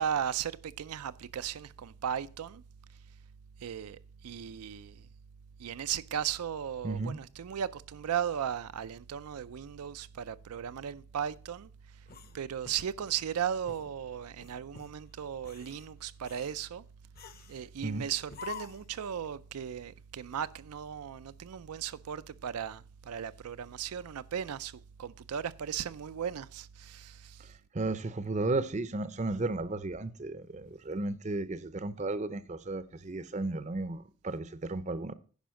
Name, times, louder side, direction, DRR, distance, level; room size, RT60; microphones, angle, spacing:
voice 1, 0.0-2.6 3.6-5.0 5.6-11.7 12.3-16.8 17.5-27.4, right 8 dB, 90° right, 0.4 m, -36 dB
voice 2, 6.8-7.2 17.8-18.1 27.4-35.1, right 2 dB, 30° right, 0.5 m, -34 dB
sound 1, 12.1-13.3 13.7-13.9 14.4-14.9 15.4-15.9 16.2-16.6 17.2-17.6 18.3-19.0, left 7 dB, 40° left, 0.8 m, -47 dB
10.5 x 5.1 x 6.2 m
head